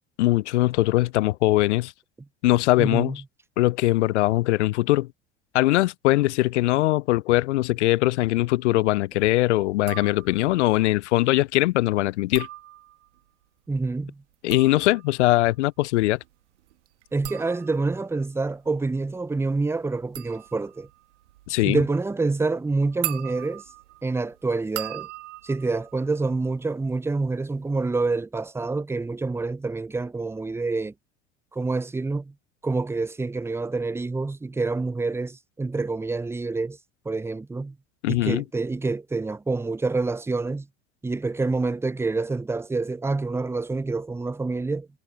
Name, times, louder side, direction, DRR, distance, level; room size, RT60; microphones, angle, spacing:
voice 1, 0.2-1.9 2.4-3.2 3.6-5.1 5.5-12.5 14.4-16.2 21.5-21.8 38.0-38.4, left 18 dB, 70° left, 0.7 m, -21 dB
voice 2, 2.8-3.2 13.7-14.2 17.1-20.9 21.6-23.6 24.0-25.1 25.4-30.9 31.5-32.3 32.6-36.8 37.0-37.8 38.1-40.7 41.0-44.9, right 3 dB, 5° right, 0.7 m, -27 dB
sound 1, 9.8-10.6 12.1-13.2 14.2-26.9 27.2-27.8, right 16 dB, 70° right, 1.6 m, -40 dB
figure-of-eight pair, 70°, 36 cm